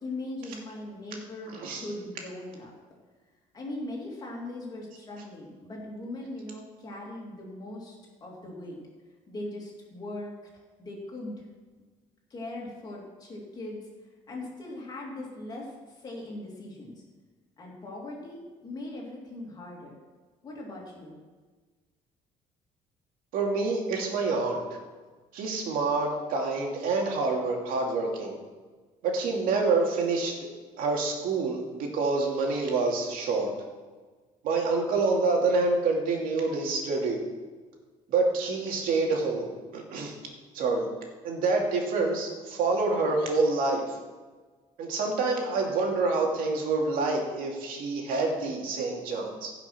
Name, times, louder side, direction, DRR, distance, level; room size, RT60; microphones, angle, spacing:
voice 1, 0.0-2.7 3.5-8.8 9.3-11.4 12.3-13.9 14.3-17.0 17.6-20.0 20.4-21.2, left 1 dB, 30° left, -2 dB, 3.0 m, -40 dB
voice 2, 1.5-1.8 23.3-24.6 25.3-28.4 29.0-30.3 30.8-33.5 34.4-37.2 38.1-40.1 40.5-40.9 41.2-43.8 44.8-49.5, right 3 dB, 80° right, 0 dB, 2.5 m, -27 dB
15.5 x 5.9 x 6.0 m, 1.4 s
cardioid pair, 165°, 14 cm